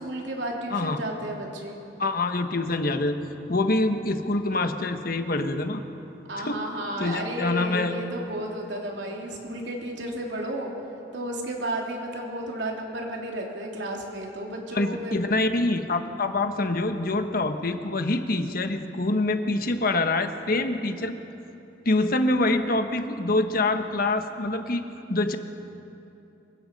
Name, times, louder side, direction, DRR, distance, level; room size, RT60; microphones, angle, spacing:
voice 1, 0.0-1.8 6.3-10.7 11.1-15.2, right 1 dB, 85° right, 0 dB, 3.3 m, -33 dB
voice 2, 2.0-3.2 3.5-5.8 6.4-6.6 7.0-7.9 14.7-21.1 21.8-25.4, left 2 dB, 55° left, 7 dB, 1.3 m, -25 dB
24.5 x 23.0 x 5.4 m, 3.0 s
head